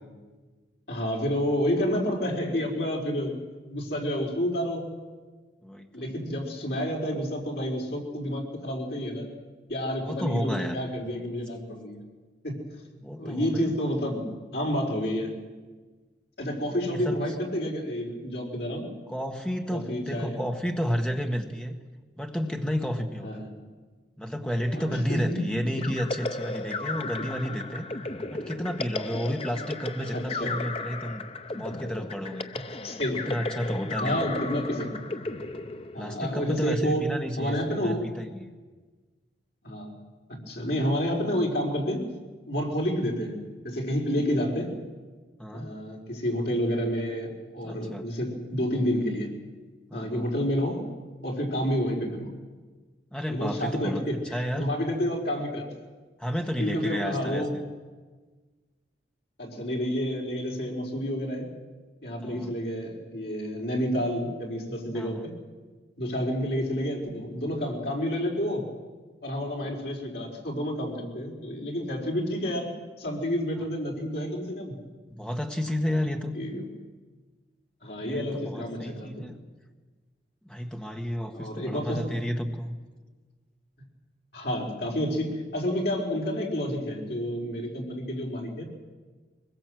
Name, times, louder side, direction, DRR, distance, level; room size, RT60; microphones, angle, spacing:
voice 1, 0.9-3.3 3.7-4.8 5.9-9.3 9.7-12.0 12.4-12.5 13.2-15.3 16.4-18.9 19.7-20.4 23.2-23.5 24.7-25.4 30.1-30.5 32.5-33.3 34.0-35.1 35.9-37.1 37.4-38.1 39.6-40.0 40.3-42.0 42.5-43.4 43.6-44.7 45.5-49.3 49.9-50.9 51.2-52.2 53.3-55.7 56.6-57.6 59.4-61.5 62.0-65.3 66.0-68.6 69.2-72.7 73.0-74.7 76.3-76.6 77.8-79.3 81.3-82.1 84.3-88.6, equal, 60° left, -1 dB, 4.8 m, -29 dB
voice 2, 10.0-10.8 13.0-13.7 16.8-17.2 19.1-21.8 22.2-23.4 24.2-27.9 28.3-31.2 31.5-32.5 33.3-34.3 36.0-38.5 45.4-45.7 47.6-48.0 49.9-50.2 53.1-54.0 54.3-54.7 56.2-57.6 62.2-62.5 64.9-65.3 69.6-69.7 75.1-76.3 78.0-79.4 80.4-82.8, equal, 5° left, 3 dB, 1.6 m, -31 dB
sound 1, 25.8-36.4, left 3 dB, 30° left, 0.7 m, -35 dB
22.5 x 21.0 x 7.8 m, 1.4 s
head